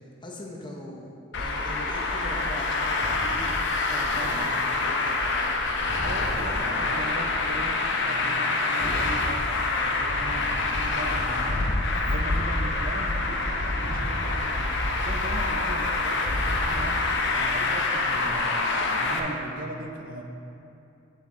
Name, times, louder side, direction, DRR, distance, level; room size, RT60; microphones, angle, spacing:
voice 1, 0.2-3.6 3.9-5.2, left 1 dB, 25° left, -1 dB, 0.8 m, -41 dB
Traffic noise roadway noise, 1.3-19.2, left 3 dB, 60° left, 0.7 m, -26 dB
Thump thud, 3.0-3.5 5.8-6.5 8.8-9.2 11.5-12.0 13.8-14.5 16.2-17.2, equal, 40° left, 1.3 m, -35 dB
voice 2, 3.9-4.5 5.8-11.7 12.0-17.0 17.3-18.7 19.0-20.2, right 2 dB, 45° right, 2 dB, 0.6 m, -38 dB
7.9 x 7.4 x 3.7 m, 2.6 s
head